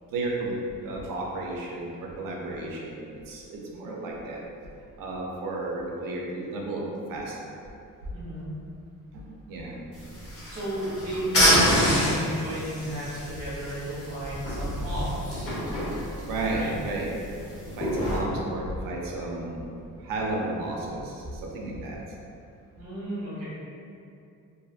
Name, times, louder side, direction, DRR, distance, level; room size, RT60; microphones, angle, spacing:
voice 1, 0.0-4.4 5.0-6.8 7.1-7.6 9.1-9.8 16.3-17.1 17.7-19.7 20.0-22.0, right 2 dB, 75° right, -2 dB, 0.6 m, -33 dB
voice 2, 8.1-8.5 10.5-15.5 16.5-16.7 22.8-23.5, equal, 45° right, -9 dB, 1.3 m, -33 dB
sound 1, 9.9-18.2, equal, 40° left, 0.9 m, -27 dB
2.6 x 2.4 x 2.4 m, 2.6 s
cardioid pair, 140°, 34 cm